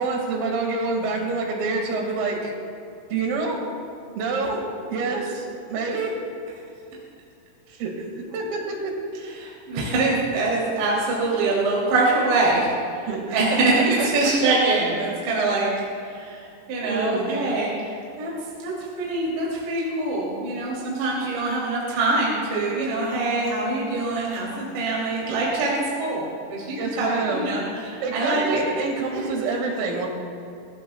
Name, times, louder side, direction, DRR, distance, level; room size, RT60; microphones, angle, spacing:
voice 1, 0.0-2.5 3.1-3.7 4.1-4.6 4.9-6.1 7.7-8.9 13.1-14.1 14.4-14.5 16.8-17.3 26.8-27.5 28.0-30.1, right 3 dB, 85° right, 1 dB, 4.8 m, -27 dB
voice 2, 9.4-12.7 13.3-15.7 16.1-16.4 16.7-17.7 18.2-18.3 18.6-25.7 26.0-28.6 29.1-29.2, right 2 dB, 60° right, -6 dB, 5.0 m, -24 dB
23.0 x 17.0 x 2.3 m, 2.5 s
omnidirectional pair, 5.8 m